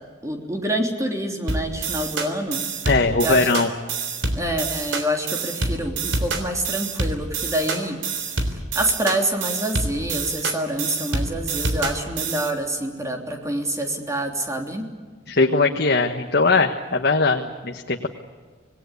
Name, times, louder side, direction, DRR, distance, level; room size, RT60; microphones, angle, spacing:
voice 1, 0.2-2.6 3.2-3.4 4.3-8.0 8.5-14.8, right 1 dB, 15° right, 2 dB, 3.3 m, -26 dB
sound 1, 1.5-12.5, right 3 dB, 80° right, 3.5 m, -27 dB
voice 2, 2.8-3.7 15.3-18.1, left 3 dB, 55° left, 4 dB, 1.4 m, -20 dB
26.5 x 20.0 x 8.4 m, 1.5 s
head